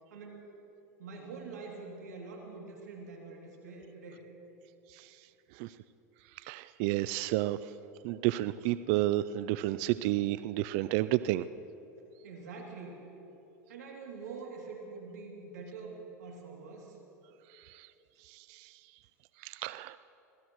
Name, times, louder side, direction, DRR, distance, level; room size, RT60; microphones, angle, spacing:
voice 1, 0.1-0.5 1.0-4.2 12.2-13.0 13.7-17.0, right 4 dB, 85° right, 0 dB, 2.8 m, -45 dB
voice 2, 6.5-7.6 8.0-11.4 18.5-18.6 19.4-20.0, right 16 dB, 60° right, 14 dB, 0.4 m, -30 dB
25.5 x 16.5 x 3.1 m, 2.9 s
hypercardioid pair, 100°, 9 cm